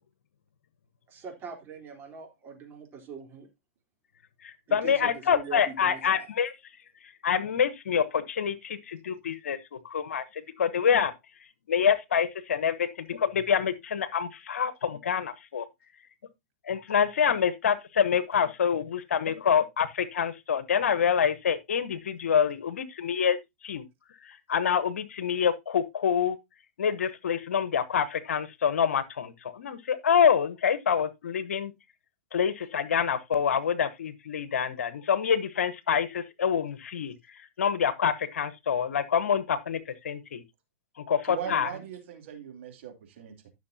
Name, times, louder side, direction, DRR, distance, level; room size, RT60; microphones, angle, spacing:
voice 1, 1.1-3.5 4.7-6.3 41.5-41.9, right 6 dB, 30° right, 3.7 m, -42 dB
voice 2, 4.4-6.5 7.2-9.6 9.8-11.1 11.7-15.6 16.7-23.4 23.6-23.8 24.3-26.4 26.8-31.7 32.3-37.1 37.6-39.8 40.0-40.4 41.1-41.7, left 7 dB, 75° left, 1.1 m, -26 dB
voice 3, 41.3-43.5, right 9 dB, 60° right, 2.9 m, -40 dB
14.5 x 6.4 x 2.8 m
hypercardioid pair, 115°, 8 cm